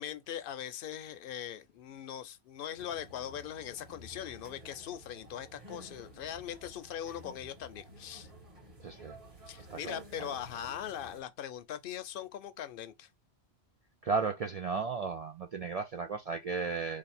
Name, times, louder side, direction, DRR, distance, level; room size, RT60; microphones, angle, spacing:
voice 1, 0.0-8.3 9.5-13.1, left 10 dB, 60° left, 0.6 m, -41 dB
sound 1, 2.8-11.2, equal, 30° right, 1.2 m, -53 dB
voice 2, 8.8-9.1 9.7-10.0 14.0-17.0, right 4 dB, 70° right, 0.3 m, -34 dB
3.3 x 2.4 x 4.1 m
omnidirectional pair, 1.2 m